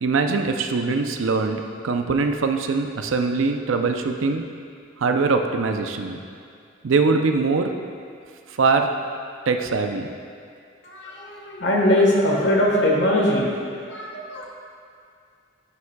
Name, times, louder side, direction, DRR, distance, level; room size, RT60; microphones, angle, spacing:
voice 1, 0.0-4.4 5.0-6.2 6.8-7.7 8.5-8.9 9.5-10.1, right 4 dB, 85° right, 5 dB, 0.5 m, -22 dB
voice 2, 10.8-13.5 13.9-14.4, left 1 dB, 65° left, -2 dB, 1.3 m, -21 dB
11.0 x 7.1 x 2.3 m, 2.4 s
head